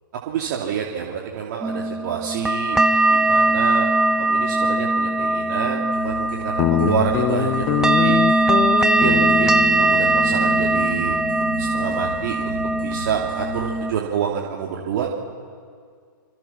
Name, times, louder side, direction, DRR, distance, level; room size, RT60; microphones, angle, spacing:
voice 1, 0.2-2.8 3.1-3.9 4.2-8.2 8.9-11.2 11.6-15.1, right 8 dB, 50° right, -2 dB, 3.0 m, -28 dB
sound 1, 1.6-13.9, right 2 dB, 5° right, 1.3 m, -20 dB
sound 2, 5.9-13.7, right 4 dB, 90° right, 4.8 m, -37 dB
Guitar, 6.6-13.3, left 13 dB, 30° left, 0.8 m, -26 dB
28.0 x 26.5 x 6.0 m, 2.1 s
hypercardioid pair, 120°, 12 cm